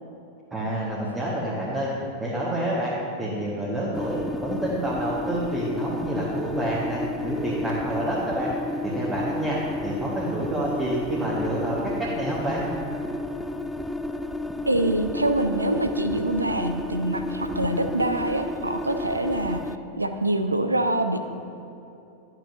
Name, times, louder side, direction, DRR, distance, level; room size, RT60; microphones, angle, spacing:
voice 1, 0.5-1.9 2.2-8.5 8.9-9.6 9.8-11.8 12.2-12.6, right 1 dB, 15° right, -7 dB, 1.5 m, -28 dB
sound 1, 3.9-19.8, left 2 dB, 5° left, 0.3 m, -32 dB
voice 2, 14.7-19.6 20.0-21.2, right 1 dB, 80° right, 8 dB, 0.5 m, -25 dB
11.5 x 9.2 x 2.7 m, 2.9 s
figure-of-eight pair, 90°, 0 cm